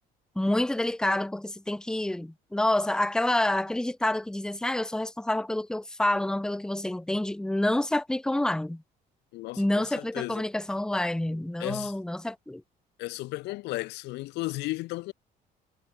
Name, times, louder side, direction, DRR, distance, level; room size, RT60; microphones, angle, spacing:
voice 1, 0.4-8.8 9.6-12.6, left 1 dB, 5° left, 0.9 m, -28 dB
voice 2, 9.3-10.5 11.6-11.9 13.0-15.1, left 20 dB, 90° left, 1.3 m, -34 dB
cardioid pair, 110°, 17 cm